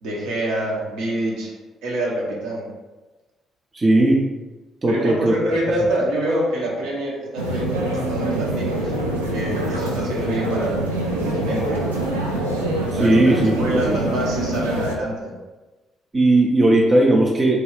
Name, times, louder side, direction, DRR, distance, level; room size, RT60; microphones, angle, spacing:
voice 1, 0.0-1.5 1.8-2.7 4.9-9.0 9.3-10.8 11.1-11.9 13.0-13.3 13.6-15.3, right 1 dB, 65° right, -4 dB, 0.8 m, -26 dB
voice 2, 3.7-4.2 4.8-5.4 12.9-13.5 13.9-14.0 16.1-17.6, right 2 dB, 30° right, -1 dB, 0.5 m, -17 dB
sound 1, 7.4-14.9, right 1 dB, 85° right, 0.3 m, -25 dB
3.2 x 2.3 x 3.2 m, 1.2 s
figure-of-eight pair, 45°, 0 cm